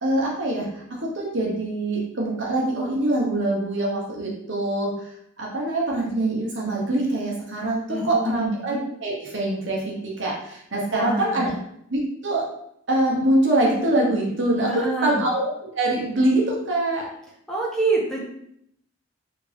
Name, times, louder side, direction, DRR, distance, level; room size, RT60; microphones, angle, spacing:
voice 1, 0.0-4.9 5.4-11.5 11.9-12.5 12.9-17.1, right 1 dB, 55° right, -3 dB, 0.9 m, -24 dB
voice 2, 7.9-8.6 10.9-11.5 14.7-15.2 17.5-18.2, right 2 dB, 5° left, -4 dB, 0.5 m, -26 dB
3.3 x 2.6 x 3.3 m, 0.74 s
head